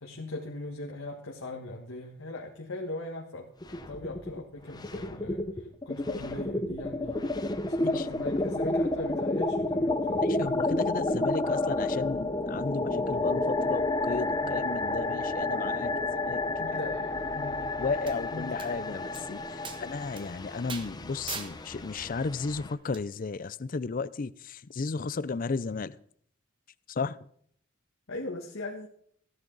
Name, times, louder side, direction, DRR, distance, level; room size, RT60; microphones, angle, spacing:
voice 1, 0.0-3.5 3.9-7.4 7.7-10.5 14.4-14.7 16.6-17.7 18.3-18.6 28.1-28.9, left 2 dB, 85° left, 1.7 m, -40 dB
sound 1, 3.6-4.4 4.7-22.7, left 2 dB, 20° left, 0.8 m, -30 dB
voice 2, 10.2-16.8 17.8-26.0 26.9-27.2, left 4 dB, 40° left, 0.4 m, -34 dB
sound 2, 18.1-18.2 18.6-18.7 19.1-19.2 19.6-19.8 20.2-20.3 20.7-20.9 21.3-21.5 22.9-23.0, right 5 dB, 25° right, 1.4 m, -38 dB
16.0 x 11.0 x 4.0 m
head